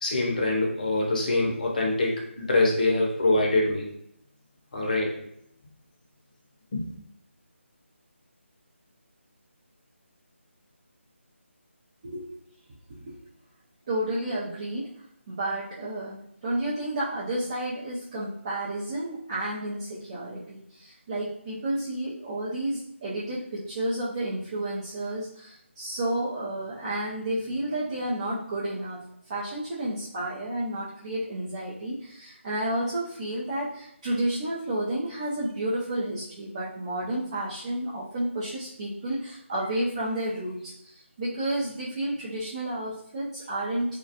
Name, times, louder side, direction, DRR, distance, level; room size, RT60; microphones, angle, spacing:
voice 1, 0.0-3.8 4.7-5.1 6.7-6.8, left 2 dB, 40° left, -1 dB, 0.6 m, -24 dB
voice 2, 13.9-14.9 15.3-29.0 29.3-44.0, right 1 dB, 25° right, -9 dB, 0.4 m, -31 dB
2.3 x 2.1 x 2.7 m, 0.73 s
figure-of-eight pair, 165°, 7 cm